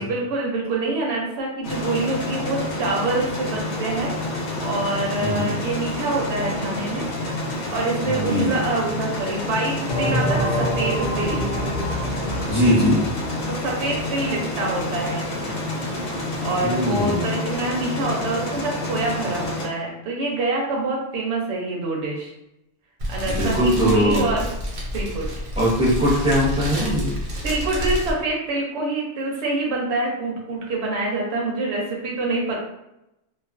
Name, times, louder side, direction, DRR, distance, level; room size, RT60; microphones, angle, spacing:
voice 1, 0.0-4.1 4.6-7.1 7.7-11.4 13.5-15.6 16.4-22.3 23.1-24.4 24.9-25.3 27.4-32.6, right 2 dB, 70° right, -2 dB, 0.8 m, -26 dB
sound 1, 1.6-19.7, left 1 dB, 80° left, 0.9 m, -29 dB
voice 2, 8.0-8.5 12.5-13.1 16.6-17.3 23.3-24.2 25.6-27.1, equal, 5° right, -7 dB, 0.6 m, -20 dB
sound 2, 9.9-14.3, left 1 dB, 50° left, 0.7 m, -27 dB
Fire, 23.0-28.1, equal, 90° right, 1.1 m, -29 dB
2.3 x 2.2 x 2.4 m, 0.88 s
omnidirectional pair, 1.2 m